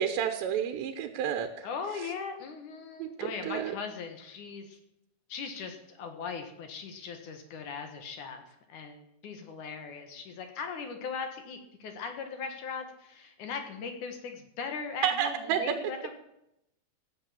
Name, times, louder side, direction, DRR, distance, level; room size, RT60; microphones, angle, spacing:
voice 1, 0.0-1.7 3.0-3.7 15.0-15.6, right 9 dB, 85° right, 7 dB, 3.2 m, -30 dB
voice 2, 1.6-4.8 5.3-8.4 8.7-16.1, left 5 dB, 60° left, 6 dB, 2.4 m, -39 dB
16.0 x 7.7 x 7.3 m, 0.83 s
omnidirectional pair, 4.9 m